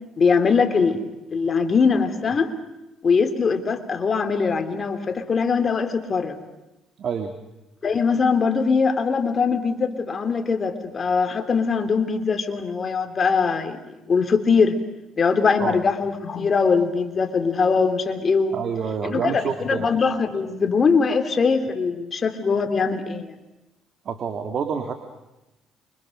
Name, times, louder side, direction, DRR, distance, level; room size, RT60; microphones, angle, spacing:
voice 1, 0.2-1.0 1.3-2.5 3.0-6.4 7.8-13.8 14.1-14.8 15.2-18.6 19.0-23.3, left 5 dB, 40° left, 8 dB, 3.2 m, -21 dB
voice 2, 7.0-7.4 15.6-15.8 18.5-19.9 24.1-24.9, right 6 dB, 55° right, 6 dB, 2.5 m, -27 dB
29.0 x 25.0 x 6.6 m, 0.98 s
supercardioid pair, 80°, 0 cm